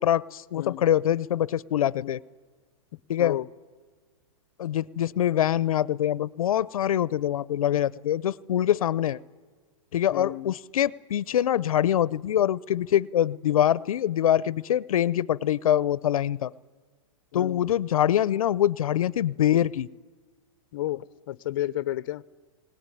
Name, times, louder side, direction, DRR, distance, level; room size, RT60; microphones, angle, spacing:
voice 1, 0.0-2.2 3.1-3.4 4.6-9.2 9.9-16.5 17.3-19.9, left 11 dB, 90° left, 0.6 m, -24 dB
voice 2, 10.1-10.6 17.3-17.7 20.7-22.2, left 14 dB, 40° left, 0.6 m, -32 dB
21.0 x 18.5 x 9.9 m
hypercardioid pair, 170°, 18 cm